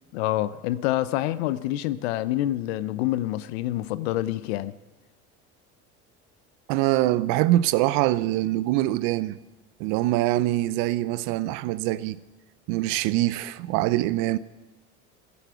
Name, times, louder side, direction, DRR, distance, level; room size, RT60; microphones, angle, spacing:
voice 1, 0.1-4.7, left 14 dB, 90° left, 0.7 m, -27 dB
voice 2, 6.7-9.4 9.8-12.2 12.7-14.4, right 16 dB, 75° right, 0.7 m, -24 dB
14.5 x 11.5 x 6.9 m
supercardioid pair, 100°, 31 cm